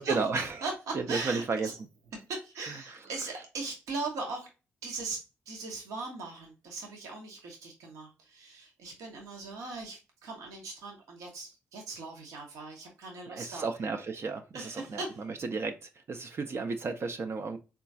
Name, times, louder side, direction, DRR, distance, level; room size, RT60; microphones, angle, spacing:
voice 1, 0.0-0.6 0.9-1.7 2.6-3.3 13.3-17.6, right 4 dB, 50° right, 6 dB, 0.5 m, -33 dB
voice 2, 0.6-1.8 2.3-4.5 4.8-13.7 14.5-15.2, right 3 dB, 70° right, 1 dB, 0.8 m, -39 dB
3.7 x 2.3 x 2.5 m, 0.30 s
hypercardioid pair, 40°, 6 cm